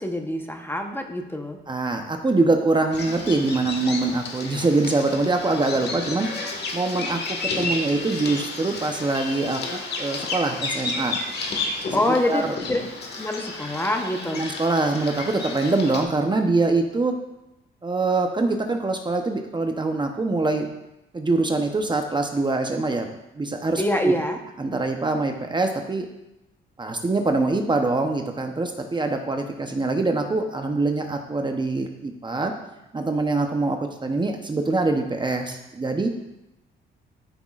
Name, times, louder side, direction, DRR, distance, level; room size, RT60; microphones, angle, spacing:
voice 1, 0.0-1.6 11.9-12.8 13.2-14.5 23.8-24.4, left 1 dB, 10° left, 4 dB, 0.9 m, -25 dB
voice 2, 1.7-11.2 12.3-12.6 14.3-17.1 17.8-20.7 21.1-23.1 23.4-24.1 24.6-26.1 26.8-32.5 32.9-36.1, right 3 dB, 25° right, 4 dB, 0.8 m, -24 dB
Bird vocalization bird call bird song, 2.9-16.0, left 3 dB, 55° left, 1.6 m, -32 dB
12.5 x 6.0 x 2.4 m, 0.92 s
cardioid pair, 90°, 20 cm